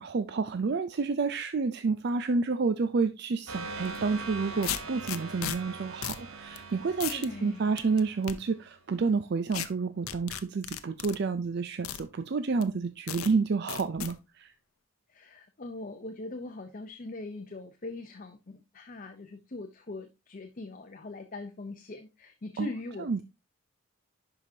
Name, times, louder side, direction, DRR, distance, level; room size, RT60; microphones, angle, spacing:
voice 1, 0.0-14.5 22.6-22.7 23.0-23.2, right 4 dB, 50° right, 0.4 m, -29 dB
sound 1, 3.5-8.9, right 3 dB, 90° right, 1.1 m, -42 dB
sound 2, 3.8-4.0 4.6-5.6 6.0-6.2 6.6-6.7 7.0-7.3 7.8-8.3 9.5-9.7 10.1-11.2 11.8-12.0 12.6-12.7 13.1-13.3 13.7-14.1, left 10 dB, 85° left, 0.6 m, -35 dB
voice 2, 7.1-7.7 15.1-23.2, left 2 dB, 40° left, 0.6 m, -41 dB
11.0 x 4.9 x 2.7 m
head